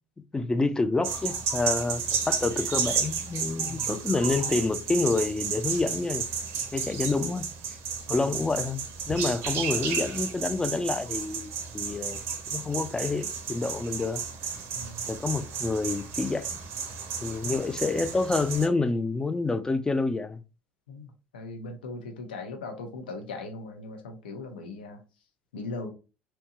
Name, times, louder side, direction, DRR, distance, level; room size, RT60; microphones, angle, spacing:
voice 1, 0.3-6.3 6.7-7.5 8.1-12.2 12.5-14.2 15.1-16.6 17.2-20.4, left 3 dB, 15° left, 0.3 m, -28 dB
sound 1, 1.0-18.7, right 6 dB, 50° right, 0.5 m, -32 dB
voice 2, 3.6-4.0 8.1-8.3 14.7-15.1 17.4-17.6 20.9-25.0 25.5-25.9, left 2 dB, 70° left, 0.6 m, -39 dB
2.8 x 2.2 x 2.8 m
figure-of-eight pair, 60°, 5 cm